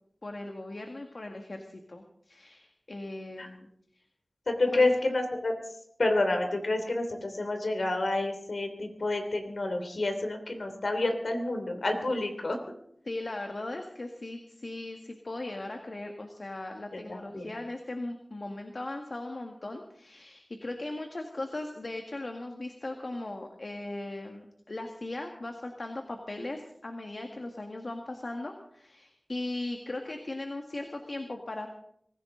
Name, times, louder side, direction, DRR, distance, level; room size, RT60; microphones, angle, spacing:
voice 1, 0.2-3.7 4.7-5.0 13.0-31.7, left 2 dB, 65° left, 4 dB, 1.7 m, -38 dB
voice 2, 4.5-5.6 6.0-12.6 16.9-17.5, left 2 dB, 85° left, 5 dB, 3.0 m, -29 dB
24.0 x 15.5 x 3.9 m, 0.70 s
wide cardioid pair, 50°, 0 cm